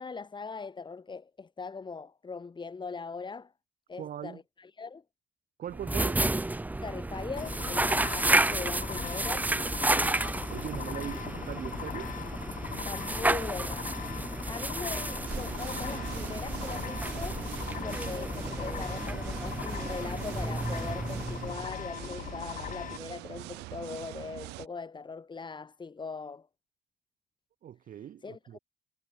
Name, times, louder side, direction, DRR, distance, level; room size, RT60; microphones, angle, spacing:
voice 1, 0.0-3.5 3.9-5.0 6.8-9.5 12.8-13.9 14.4-17.4 17.8-26.5 28.2-28.6, left 4 dB, 25° left, 3.0 m, -40 dB
voice 2, 4.0-4.4 5.6-6.2 10.5-12.1 27.6-28.6, right 10 dB, 55° right, 3.2 m, -40 dB
sound 1, 5.7-21.8, right 2 dB, 10° right, 0.8 m, -31 dB
sound 2, 7.4-23.0, left 9 dB, 50° left, 1.6 m, -40 dB
sound 3, 15.3-24.7, right 22 dB, 80° right, 4.3 m, -44 dB
supercardioid pair, 80°, 17 cm